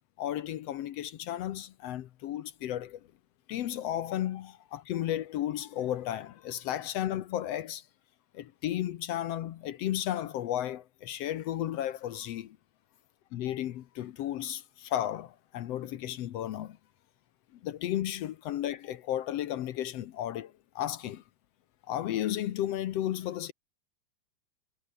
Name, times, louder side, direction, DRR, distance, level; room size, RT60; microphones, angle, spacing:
voice 1, 0.2-3.0 3.5-7.8 8.3-12.6 13.3-16.8 17.6-21.2 21.9-23.5, left 12 dB, 70° left, 1.6 m, -34 dB
omnidirectional pair, 3.8 m